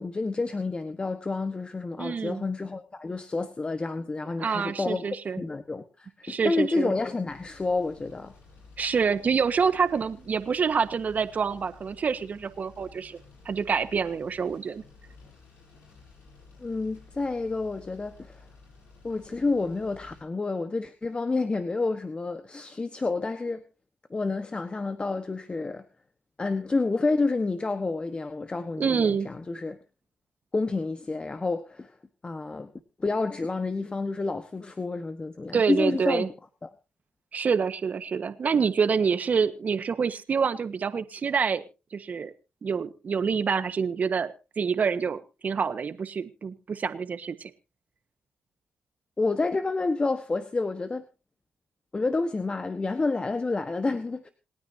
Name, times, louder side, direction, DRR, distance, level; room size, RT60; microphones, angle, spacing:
voice 1, 0.0-5.0 5.4-8.3 16.6-18.4 19.0-23.6 24.1-25.8 26.4-29.8 30.5-31.9 32.2-32.7 33.0-36.3 36.6-36.7 49.2-51.0 51.9-54.3, left 3 dB, 30° left, 9 dB, 1.3 m, -29 dB
voice 2, 2.0-2.4 4.4-5.4 6.2-6.9 8.8-13.2 13.4-14.8 28.8-29.3 35.5-36.3 37.3-41.6 41.9-42.3 42.6-47.5, right 6 dB, 55° right, 11 dB, 1.4 m, -27 dB
sound 1, 7.2-20.2, left 3 dB, 85° left, 7.5 m, -53 dB
27.5 x 9.7 x 2.8 m, 0.31 s
supercardioid pair, 55°, 3 cm